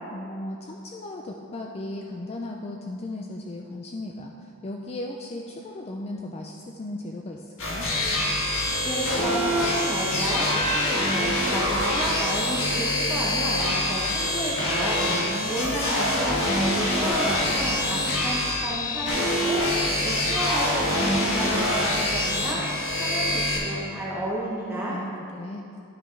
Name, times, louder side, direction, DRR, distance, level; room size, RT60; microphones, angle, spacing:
voice 1, 0.1-7.9 15.1-15.8 24.9-25.7, left 1 dB, 25° left, 1 dB, 0.4 m, -36 dB
sound 1, 7.6-23.6, left 1 dB, 60° left, 1.6 m, -25 dB
voice 2, 8.8-15.0 15.4-22.6 22.9-25.0, right 1 dB, 10° right, -7 dB, 0.9 m, -31 dB
11.5 x 5.3 x 3.3 m, 2.6 s
head